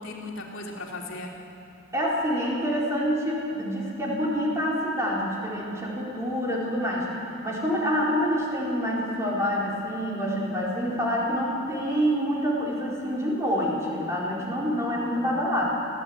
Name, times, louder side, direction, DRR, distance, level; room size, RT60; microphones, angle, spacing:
voice 1, 0.0-1.4 14.9-15.6, left 2 dB, 80° left, -1 dB, 3.0 m, -38 dB
voice 2, 1.9-7.1 7.4-15.7, equal, 15° right, -5 dB, 4.4 m, -27 dB
24.5 x 15.5 x 8.9 m, 2.8 s
head